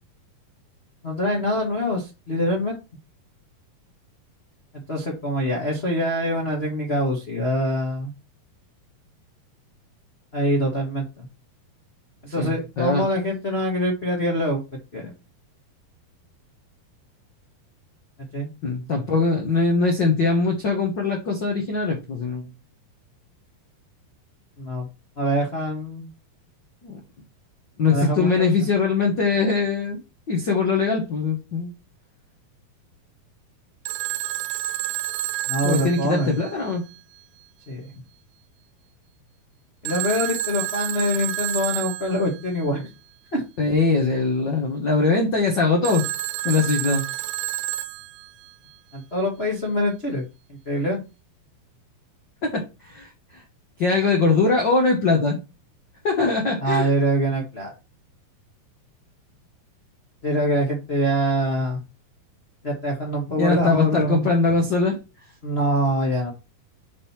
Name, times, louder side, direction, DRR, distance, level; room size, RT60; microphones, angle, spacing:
voice 1, 1.0-2.8 4.9-8.1 10.3-11.3 12.2-14.6 14.9-15.1 18.3-18.5 24.6-24.9 25.2-26.1 27.9-28.5 35.5-36.3 37.7-37.9 39.8-42.9 43.3-43.4 48.9-50.2 50.6-51.0 56.6-57.7 60.2-61.8 62.6-64.3 65.4-66.3, equal, 70° left, 0.5 m, -24 dB
voice 2, 12.4-13.0 18.6-22.4 26.8-26.9 27.8-30.0 30.3-31.7 35.6-36.8 43.6-46.1 46.4-47.0 52.4-53.4 53.8-55.4 56.0-56.9 63.4-65.0, left 4 dB, 90° left, 1.0 m, -22 dB
Telephone, 33.9-37.0 39.9-42.4 45.9-48.5, right 13 dB, 85° right, 2.4 m, -29 dB
5.3 x 5.1 x 5.8 m
omnidirectional pair, 4.2 m